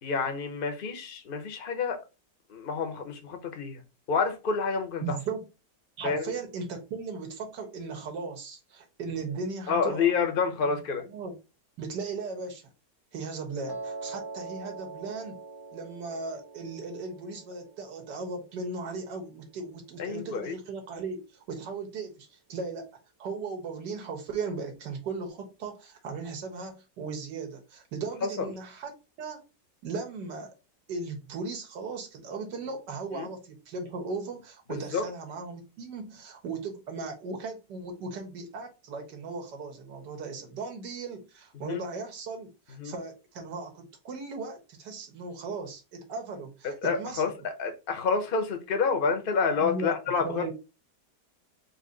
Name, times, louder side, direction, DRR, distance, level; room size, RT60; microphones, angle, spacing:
voice 1, 0.0-2.0 2.5-3.8 4.1-5.2 6.0-6.3 9.7-11.0 20.0-20.5 28.2-28.5 33.1-33.3 34.7-35.0 41.6-41.8 42.8-42.9 46.6-50.5, left 5 dB, 40° left, 0.8 m, -28 dB
voice 2, 5.0-5.4 6.0-10.1 10.6-10.8 11.1-11.3 11.8-12.6 13.1-15.4 15.7-22.9 23.2-29.4 29.8-30.5 30.9-47.2 49.6-50.5, right 4 dB, 70° right, 1.8 m, -37 dB
Piano, 13.7-19.8, right 3 dB, 35° right, 0.4 m, -43 dB
4.1 x 2.7 x 3.9 m
omnidirectional pair, 1.9 m